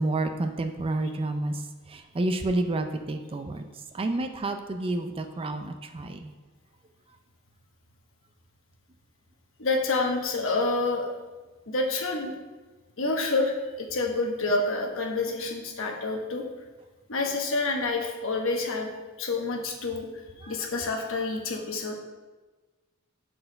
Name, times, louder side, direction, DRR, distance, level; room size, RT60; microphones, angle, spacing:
voice 1, 0.0-1.6 1.9-3.7 3.9-6.3 20.4-20.6 21.5-21.6, right 2 dB, 25° right, 6 dB, 0.4 m, -29 dB
voice 2, 9.6-11.1 11.7-12.3 13.0-16.4 17.1-18.9 19.2-20.1 20.5-22.0, left 3 dB, 65° left, 2 dB, 1.1 m, -28 dB
6.5 x 4.5 x 5.3 m, 1.3 s
head